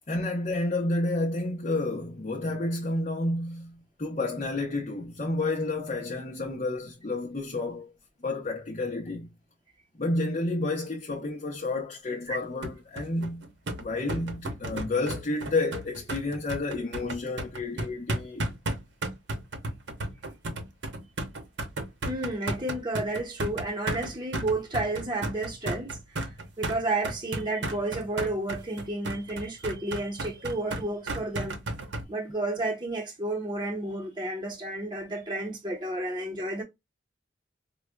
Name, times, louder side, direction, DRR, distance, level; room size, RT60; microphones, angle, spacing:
voice 1, 0.1-7.9 8.2-9.3 9.9-13.5 13.8-18.5, left 2 dB, 40° left, 0.7 m, -30 dB
sound 1, 12.6-32.0, right 1 dB, 75° right, 0.9 m, -34 dB
voice 2, 22.0-26.0 26.6-31.6 32.1-36.6, right 2 dB, 25° right, 0.9 m, -31 dB
4.9 x 2.2 x 2.2 m
head